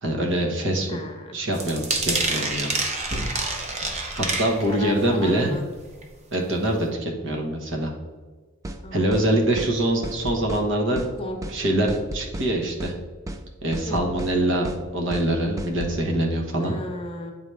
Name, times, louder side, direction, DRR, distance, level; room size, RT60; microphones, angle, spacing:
voice 1, 0.0-1.0 1.3-2.7 4.1-5.5 6.3-7.9 8.9-11.1 11.5-12.9 13.6-14.7 14.9-16.7, right 1 dB, 60° right, 1 dB, 1.1 m, -24 dB
voice 2, 0.9-1.4 4.6-5.6 8.8-9.4 11.0-11.4 13.8-14.0 16.6-17.3, left 1 dB, 25° left, 2 dB, 0.8 m, -35 dB
sound 1, 1.5-4.9 5.3-5.6 6.0-6.1 6.4-6.5, right 3 dB, 30° right, 0.7 m, -27 dB
sound 2, 8.6-8.8 9.1-9.3 9.6-9.7 10.0-10.7 11.0-11.1 11.4-11.6 11.9-12.5 12.8-13.0 13.3-13.4 13.7-14.3 14.6-14.8 15.1-15.3 15.6-16.0, right 1 dB, 15° right, 0.3 m, -33 dB
8.9 x 4.0 x 3.3 m, 1.4 s
head